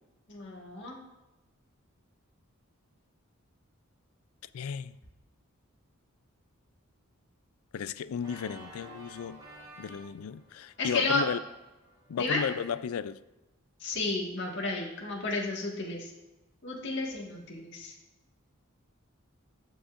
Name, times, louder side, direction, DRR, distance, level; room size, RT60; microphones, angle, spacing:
voice 1, 0.3-1.0 10.8-11.2 12.2-12.4 13.8-16.1 16.6-17.9, left 2 dB, 55° left, -1 dB, 1.6 m, -32 dB
voice 2, 4.5-5.0 7.7-9.4 9.8-11.4 12.1-13.2, left 7 dB, 80° left, 16 dB, 0.4 m, -34 dB
Organ, 8.2-13.0, right 1 dB, 15° right, 2.6 m, -52 dB
15.5 x 5.4 x 2.5 m, 1.0 s
head